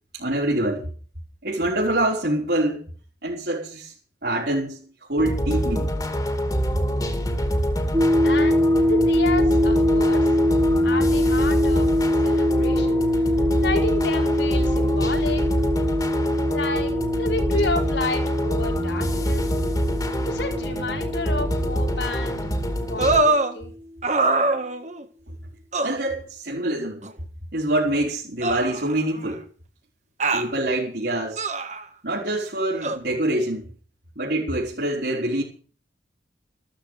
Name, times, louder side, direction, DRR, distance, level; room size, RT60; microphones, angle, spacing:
voice 1, 0.1-0.9 1.4-2.8 3.2-3.9 4.2-5.9 25.8-27.0 27.5-29.4 30.3-31.5 32.0-33.7 34.2-35.4, right 1 dB, 65° right, -6 dB, 5.4 m, -25 dB
sound 1, 5.2-23.2, equal, 20° left, 2.4 m, -26 dB
sound 2, 7.9-23.5, left 1 dB, 15° right, 0.9 m, -23 dB
voice 2, 8.2-10.4 10.8-13.0 13.6-15.4 16.5-19.5 20.3-22.4 22.9-23.7, left 2 dB, 85° left, 3 dB, 4.7 m, -31 dB
sound 3, 23.0-23.6 24.0-25.1 25.7-26.0 27.0-27.1 28.4-29.3 30.2-30.5 31.4-31.8 32.8-33.0, right 2 dB, 40° right, 1.9 m, -23 dB
15.0 x 13.5 x 6.7 m, 0.42 s
head